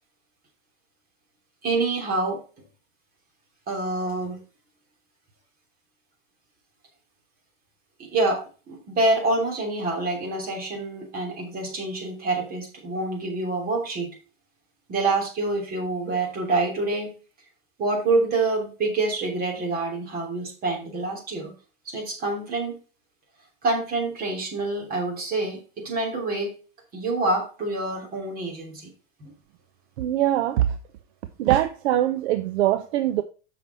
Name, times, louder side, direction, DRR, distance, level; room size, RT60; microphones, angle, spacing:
voice 1, 1.6-2.4 3.7-4.4 8.0-14.1 14.9-17.1 17.8-21.5 21.8-22.8 23.6-26.5 26.9-28.9 29.2-29.3, right 2 dB, 25° right, 3.0 m, -26 dB
voice 2, 30.0-30.7 31.4-33.2, right 13 dB, 55° right, 0.7 m, -22 dB
7.1 x 5.9 x 4.1 m
supercardioid pair, 140°, 38 cm